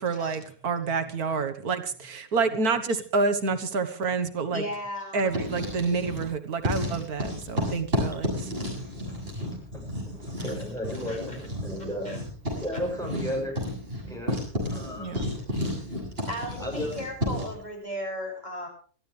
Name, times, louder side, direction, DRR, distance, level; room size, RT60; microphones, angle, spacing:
voice 1, 0.0-4.6 5.1-8.3 15.0-15.3, right 4 dB, 90° right, 9 dB, 1.9 m, -28 dB
voice 2, 4.5-5.4 11.1-11.4 12.1-12.2 15.1-15.3 16.2-18.7, left 1 dB, 30° left, 0 dB, 7.1 m, -36 dB
Writing, 5.2-6.3 6.6-17.6, equal, 40° right, 7.5 m, -32 dB
voice 3, 9.7-12.2 12.6-13.6 14.0-14.4 14.7-15.1 16.6-16.9, equal, ahead, -1 dB, 7.7 m, -34 dB
23.0 x 15.0 x 3.4 m, 0.42 s
omnidirectional pair, 1.5 m